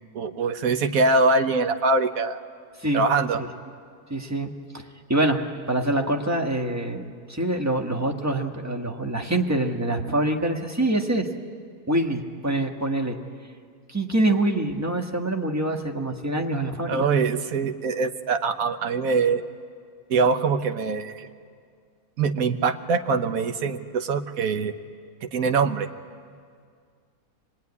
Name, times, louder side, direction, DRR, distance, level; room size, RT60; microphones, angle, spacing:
voice 1, 0.1-2.4 2.9-3.4 16.9-19.4 20.1-21.3 22.2-24.7 25.2-25.9, right 4 dB, 70° right, 7 dB, 1.4 m, -23 dB
voice 2, 4.1-5.4 5.7-11.3 11.9-13.2 13.9-17.1, right 1 dB, 10° right, 2 dB, 1.3 m, -25 dB
25.0 x 19.5 x 9.7 m, 2.1 s
omnidirectional pair, 1.6 m